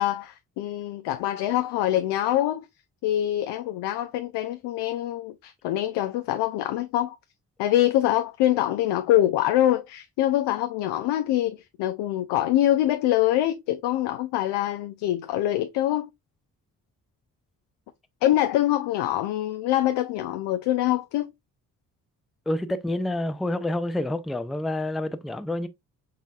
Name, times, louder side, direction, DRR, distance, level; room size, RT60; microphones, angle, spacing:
voice 1, 0.0-2.7 3.0-7.2 7.6-16.1 18.2-21.3, left 13 dB, 70° left, 0.5 m, -24 dB
voice 2, 22.5-25.7, left 1 dB, ahead, 0.4 m, -28 dB
4.0 x 3.9 x 2.3 m
hypercardioid pair, 45°, 43 cm